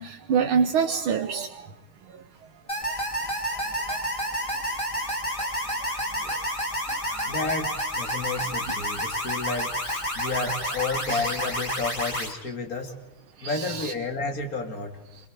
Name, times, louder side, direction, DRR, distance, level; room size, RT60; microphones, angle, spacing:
voice 1, 0.0-1.5 8.4-8.5 11.1-11.4 13.4-13.9, right 6 dB, 75° right, 3 dB, 1.9 m, -26 dB
sound 1, 2.7-12.3, equal, 15° left, 3.1 m, -30 dB
voice 2, 7.3-13.0 13.4-15.0, left 4 dB, 40° left, 4 dB, 2.8 m, -31 dB
28.5 x 23.0 x 4.7 m, 0.96 s
omnidirectional pair, 2.3 m